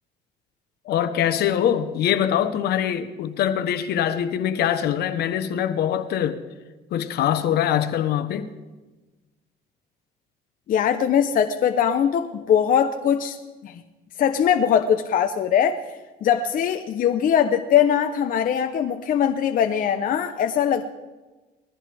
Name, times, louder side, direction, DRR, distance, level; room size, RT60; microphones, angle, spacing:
voice 1, 0.8-6.4 6.9-8.5, left 10 dB, 70° left, 1.2 m, -23 dB
voice 2, 10.7-13.4 13.6-13.8 14.2-15.8 16.2-20.9, left 8 dB, 55° left, 0.9 m, -21 dB
21.5 x 14.5 x 3.5 m
cardioid pair, 110°, 17 cm